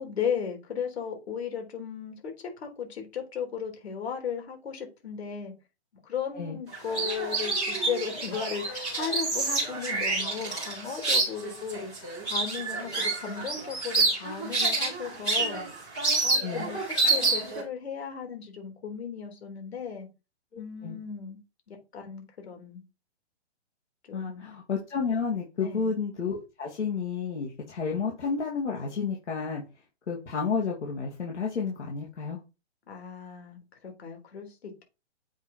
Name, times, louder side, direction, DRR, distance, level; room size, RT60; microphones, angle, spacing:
voice 1, 0.0-5.5 6.0-11.9 12.2-15.6 16.2-16.8 17.1-20.1 20.6-21.4 21.7-22.8 24.0-24.5 25.6-25.9 32.9-34.8, left 7 dB, 65° left, 3.7 m, -36 dB
sound 1, 6.7-17.6, right 3 dB, 5° left, 0.3 m, -28 dB
voice 2, 16.4-16.7 20.5-21.0 24.1-29.6 30.1-32.4, left 5 dB, 85° left, 2.8 m, -31 dB
7.9 x 5.1 x 4.4 m
hypercardioid pair, 155°, 34 cm